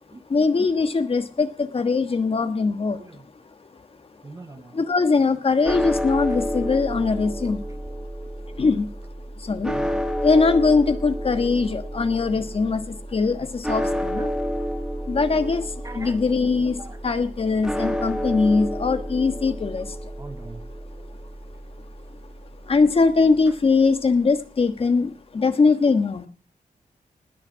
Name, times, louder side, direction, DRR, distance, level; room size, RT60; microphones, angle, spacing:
voice 1, 0.3-3.0 4.7-7.6 8.5-8.9 9.4-9.8 10.2-14.3 15.0-20.1 22.6-26.3, left 4 dB, 40° left, 1.4 m, -21 dB
voice 2, 4.2-4.8 9.6-9.9 14.2-14.5 15.8-16.2 16.8-17.0 20.2-20.6, right 3 dB, 20° right, 0.7 m, -41 dB
sound 1, 5.7-23.9, equal, 5° right, 1.5 m, -31 dB
19.5 x 6.6 x 7.4 m
wide cardioid pair, 160°, 15 cm